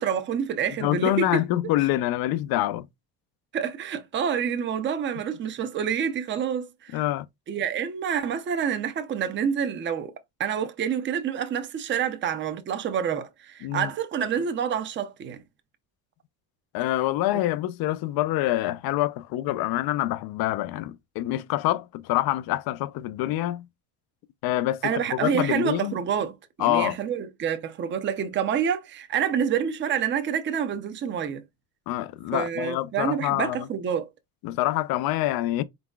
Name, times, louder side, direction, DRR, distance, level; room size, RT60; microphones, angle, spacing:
voice 1, 0.0-1.4 3.5-7.0 7.5-10.1 10.4-15.4 24.8-31.4 32.3-34.1, right 8 dB, 30° right, 0.6 m, -28 dB
voice 2, 0.8-2.9 6.9-7.3 13.6-13.9 16.7-23.6 24.4-24.9 25.2-26.0 26.6-27.0 31.9-33.7 34.4-35.6, left 15 dB, 60° left, 0.5 m, -26 dB
4.2 x 4.0 x 2.3 m
cardioid pair, 150°, 40 cm